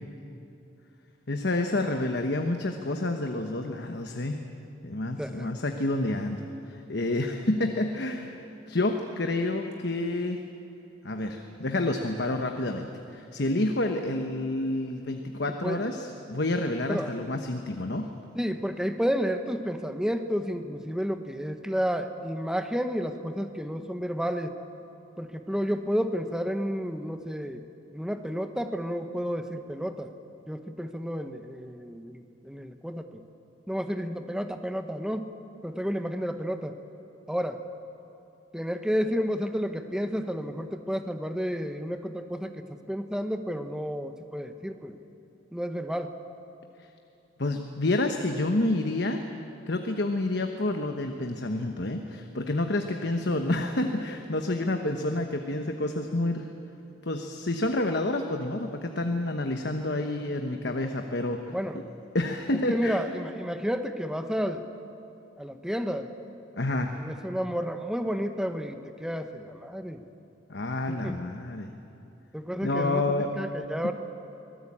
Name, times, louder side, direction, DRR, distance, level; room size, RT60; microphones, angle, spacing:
voice 1, 1.3-4.4 4.8-8.4 8.7-10.4 11.0-18.1 47.4-49.2 49.7-56.5 57.0-61.8 62.1-63.0 66.6-66.9 70.5-71.7 72.6-73.3 73.8-73.9, left 2 dB, 55° left, 5 dB, 1.1 m, -29 dB
voice 2, 18.4-24.5 25.2-27.6 27.9-30.1 30.5-33.2 33.7-35.3 35.6-36.7 37.3-37.6 38.5-45.0 45.5-46.1 61.5-61.8 62.7-64.6 65.4-66.1 66.9-70.0 70.9-71.2 72.3-73.9, equal, 5° right, 7 dB, 1.0 m, -31 dB
24.5 x 17.5 x 8.7 m, 2.8 s
head